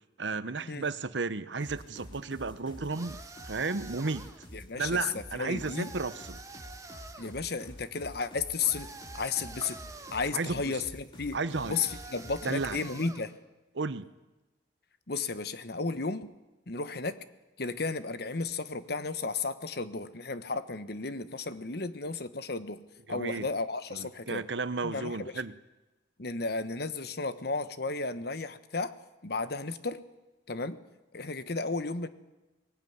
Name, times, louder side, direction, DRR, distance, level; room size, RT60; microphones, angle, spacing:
voice 1, 0.2-3.2 3.4-4.3 4.8-6.4 9.6-9.7 10.3-10.8 11.3-11.8 12.4-12.9 13.7-14.1 23.1-23.5 23.9-25.5, right 3 dB, 75° right, 14 dB, 1.0 m, -33 dB
sound 1, 1.6-12.9, equal, 25° left, 2.6 m, -48 dB
sound 2, 2.9-4.5 5.6-7.4 8.6-10.4 11.5-13.3, right 3 dB, 20° right, 1.4 m, -47 dB
voice 2, 4.5-5.0 5.4-5.9 7.2-8.9 9.1-9.8 10.1-11.4 11.7-13.3 15.1-16.3 16.7-17.2 17.6-22.8 23.1-24.4 24.8-25.3 26.2-29.0 29.2-30.0 30.5-30.8 31.1-32.1, left 4 dB, 60° left, 13 dB, 1.2 m, -33 dB
20.5 x 18.0 x 9.5 m, 1.1 s
head